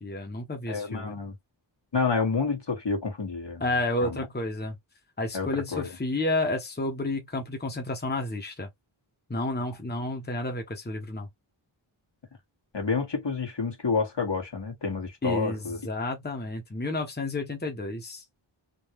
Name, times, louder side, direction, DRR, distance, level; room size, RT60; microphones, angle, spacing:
voice 1, 0.0-1.2 3.6-4.8 5.2-8.7 9.3-11.3 15.2-18.2, left 2 dB, 20° left, 1.0 m, -31 dB
voice 2, 0.7-1.4 1.9-3.7 4.0-4.3 5.3-5.9 12.7-15.8, left 4 dB, 60° left, 1.6 m, -29 dB
3.8 x 2.3 x 3.0 m
wide cardioid pair, 65°, 48 cm